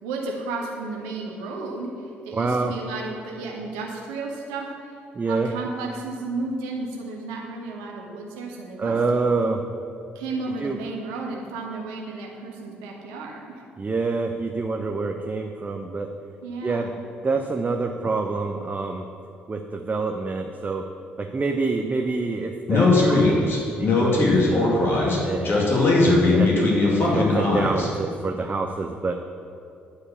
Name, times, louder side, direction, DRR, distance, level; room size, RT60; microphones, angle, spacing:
voice 1, 0.0-4.9 5.3-9.0 9.4-9.5 10.1-13.6 16.4-16.9, right 3 dB, 75° right, -1 dB, 1.5 m, -33 dB
voice 2, 2.3-2.7 5.1-5.5 8.8-9.6 10.6-10.8 13.8-16.1 16.6-16.9 17.2-19.0 19.5-20.8 21.2-24.7 25.2-26.7 27.0-29.1, right 3 dB, 30° right, 3 dB, 0.8 m, -27 dB
Speech, 22.7-27.9, left 3 dB, 45° left, 2.4 m, -19 dB
11.0 x 4.9 x 7.2 m, 2.5 s
figure-of-eight pair, 45°, 5 cm